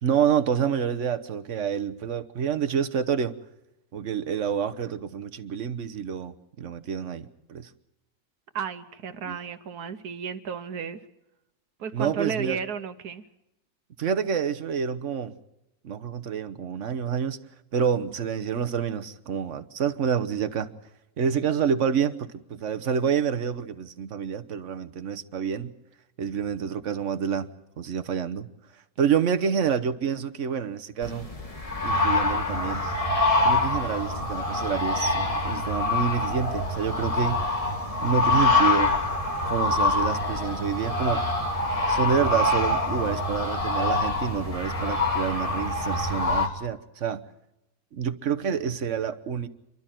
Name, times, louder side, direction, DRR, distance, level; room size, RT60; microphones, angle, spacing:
voice 1, 0.0-3.3 3.9-7.7 9.2-9.4 11.9-12.6 14.0-15.4 15.8-17.4 17.7-20.7 21.2-25.7 26.2-27.5 27.8-28.5 29.0-31.3 31.8-32.9 33.4-37.4 38.0-39.0 39.4-41.2 41.9-47.2 47.9-49.5, right 7 dB, 55° right, 1.3 m, -28 dB
voice 2, 8.5-11.0 11.8-13.2, right 7 dB, 90° right, 1.5 m, -33 dB
sound 1, 31.0-46.5, left 2 dB, 25° left, 1.9 m, -25 dB
28.5 x 12.5 x 9.1 m
omnidirectional pair, 1.6 m